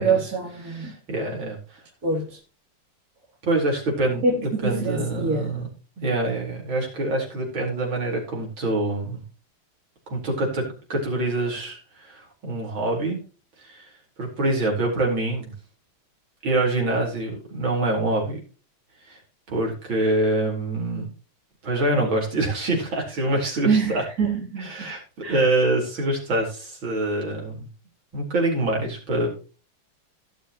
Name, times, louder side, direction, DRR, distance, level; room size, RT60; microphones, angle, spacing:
voice 1, 0.0-1.0 2.0-2.4 4.2-5.5 23.6-24.9 25.2-25.5, right 4 dB, 45° right, 3.4 m, -25 dB
voice 2, 0.7-1.6 3.4-5.7 6.0-9.2 10.1-10.7 10.9-13.2 13.6-13.9 14.2-15.5 16.4-18.4 19.1-19.2 19.5-21.1 21.6-24.0 24.6-25.0 25.3-27.7 28.1-29.4, right 2 dB, 65° right, 5.2 m, -25 dB
17.0 x 7.1 x 3.0 m
omnidirectional pair, 2.3 m